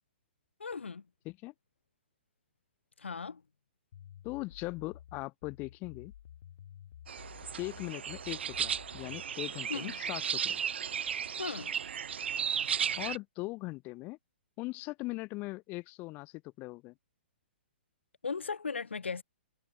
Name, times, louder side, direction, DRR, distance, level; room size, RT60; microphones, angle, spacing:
voice 1, 0.6-1.0 3.0-3.4 9.7-10.0 11.4-11.7 18.2-19.2, left 5 dB, 85° left, 2.4 m, -37 dB
sound 1, 3.9-9.3, left 10 dB, 60° left, 1.4 m, -52 dB
voice 2, 4.2-6.1 7.6-10.6 12.9-14.2 14.6-16.9, left 22 dB, 30° left, 2.1 m, -40 dB
sound 2, 7.1-13.2, right 8 dB, 70° right, 1.2 m, -35 dB
hypercardioid pair, 130°, 6 cm